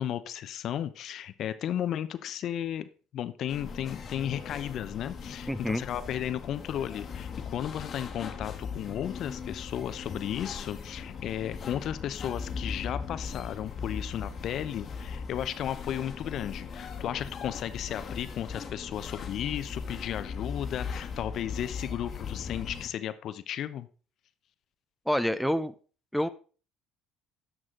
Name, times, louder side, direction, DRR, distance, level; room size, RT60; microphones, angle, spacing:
voice 1, 0.0-23.9, left 10 dB, 55° left, 13 dB, 0.7 m, -34 dB
sound 1, 3.5-22.9, left 5 dB, 40° left, 1.3 m, -39 dB
voice 2, 5.5-5.8 25.1-25.7 26.1-26.3, equal, ahead, 15 dB, 0.5 m, -27 dB
11.0 x 6.2 x 3.8 m, 0.38 s
supercardioid pair, 90°, 0 cm